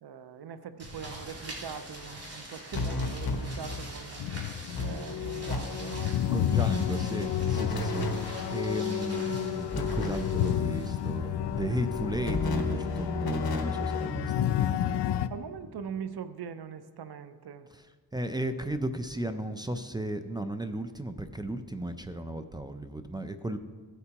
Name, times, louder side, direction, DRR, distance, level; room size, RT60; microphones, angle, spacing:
voice 1, 0.0-4.2 4.8-6.2 15.3-17.7, right 7 dB, 70° right, 11 dB, 0.7 m, -41 dB
sound 1, 0.8-12.5, right 1 dB, 35° right, 3.3 m, -44 dB
sound 2, 2.7-3.9 4.3-4.4 4.7-5.6 5.8-6.2 7.5-8.7 9.7-10.7 12.2-14.2, left 2 dB, 60° left, 1.3 m, -33 dB
sound 3, 4.2-15.3, left 10 dB, 85° left, 0.5 m, -31 dB
voice 2, 6.3-8.1 8.5-14.5 17.7-17.8 18.1-23.6, right 1 dB, 10° right, 8 dB, 0.5 m, -34 dB
16.0 x 8.1 x 2.9 m, 1.5 s
wide cardioid pair, 95°, 40 cm